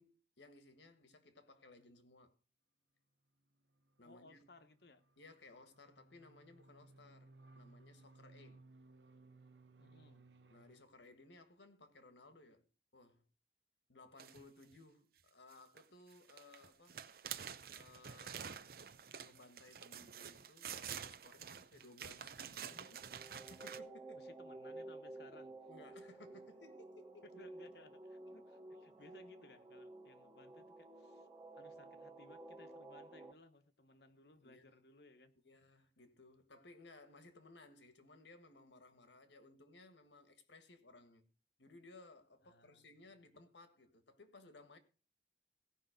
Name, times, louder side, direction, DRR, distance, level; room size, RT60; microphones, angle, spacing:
voice 1, 0.0-2.3 4.0-4.4 5.2-8.6 10.5-12.7 12.9-13.2 13.9-17.0 17.7-18.7 19.2-24.3 25.3-27.3 29.0-29.1 34.4-34.6 35.4-41.2 41.6-44.8, left 2 dB, 85° left, 1.7 m, -61 dB
sound 1, 3.8-10.8, right 3 dB, 80° right, 0.9 m, -63 dB
voice 2, 4.0-5.0 8.3-8.4 9.8-10.2 24.1-25.5 27.3-31.3 31.5-35.3 42.4-43.4, left 2 dB, 65° left, 1.2 m, -62 dB
sound 2, 14.2-14.7 15.5-15.8 16.1-23.8, right 8 dB, 55° right, 0.6 m, -48 dB
sound 3, 22.7-33.3, right 2 dB, 15° right, 1.4 m, -53 dB
16.5 x 5.6 x 5.1 m
head